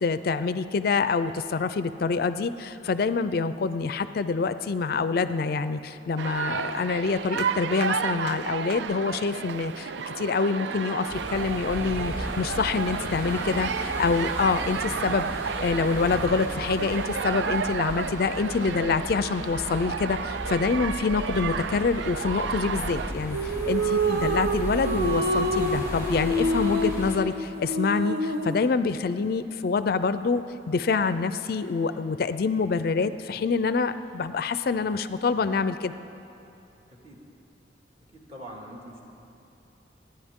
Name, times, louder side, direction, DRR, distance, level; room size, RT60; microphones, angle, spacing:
voice 1, 0.0-9.9 10.2-35.9, left 4 dB, 55° left, 12 dB, 0.4 m, -26 dB
sound 1, 6.2-23.1, right 6 dB, 80° right, 0.4 m, -32 dB
sound 2, 11.1-27.2, equal, 15° right, 2.4 m, -36 dB
voice 2, 13.6-14.3 36.9-37.2 38.1-39.0, equal, 35° right, -3 dB, 2.1 m, -45 dB
sound 3, 23.3-28.7, right 1 dB, 60° right, 0.8 m, -27 dB
26.5 x 10.0 x 3.6 m, 2.9 s
head